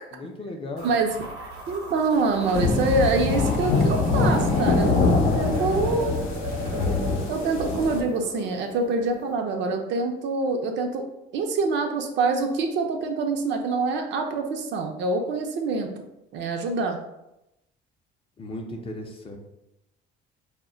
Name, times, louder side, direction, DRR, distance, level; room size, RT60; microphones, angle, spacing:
voice 1, 0.1-0.9 18.4-19.4, left 1 dB, 25° left, 3 dB, 0.4 m, -36 dB
sound 1, 0.8-9.3, right 2 dB, 85° right, 0.9 m, -38 dB
voice 2, 1.7-6.2 7.3-11.0 11.3-15.9 16.3-17.0, right 3 dB, 60° right, 3 dB, 0.5 m, -25 dB
sound 2, 2.5-8.0, left 3 dB, 80° left, 0.6 m, -23 dB
2.1 x 2.1 x 3.6 m, 0.88 s
cardioid pair, 100°, 21 cm